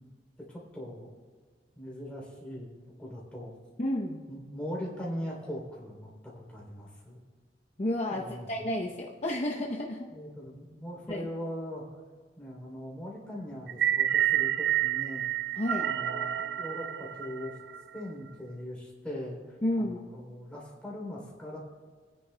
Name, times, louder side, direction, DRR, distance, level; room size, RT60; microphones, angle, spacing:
voice 1, 0.5-1.1 1.8-2.7 3.0-3.5 4.3-7.2 8.1-8.6 10.1-11.9 12.4-15.2 15.8-17.5 17.9-21.6, equal, 5° left, -4 dB, 3.0 m, -40 dB
voice 2, 3.8-4.2 7.8-10.1 11.1-11.3 15.6-15.9 19.6-20.0, left 1 dB, 40° left, -2 dB, 0.7 m, -31 dB
sound 1, 13.7-18.0, right 11 dB, 70° right, 0.3 m, -29 dB
20.5 x 9.7 x 2.2 m, 1.5 s
head